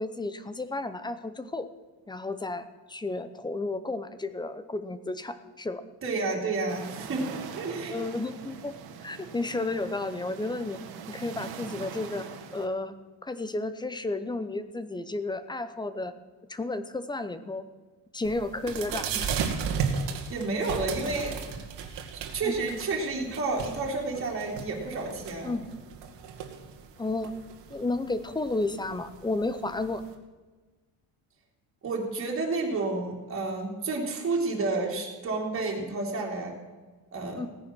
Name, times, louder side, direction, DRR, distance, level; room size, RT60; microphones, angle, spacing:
voice 1, 0.0-1.7 2.1-5.8 7.9-8.7 9.0-10.8 11.1-12.3 12.5-12.9 13.2-16.1 16.5-17.6 18.1-19.3 22.4-22.5 25.4-25.6 27.0-27.3 27.7-30.0 37.4-37.5, left 2 dB, 10° left, 12 dB, 0.6 m, -32 dB
voice 2, 6.0-8.0 20.3-21.6 22.3-25.6 31.8-36.5 37.1-37.4, right 3 dB, 30° right, -1 dB, 3.0 m, -30 dB
sound 1, 6.7-12.7, right 6 dB, 60° right, 1.9 m, -42 dB
sound 2, 18.2-30.1, right 6 dB, 80° right, 2.0 m, -36 dB
17.0 x 10.0 x 6.2 m, 1.3 s
cardioid pair, 155°, 42 cm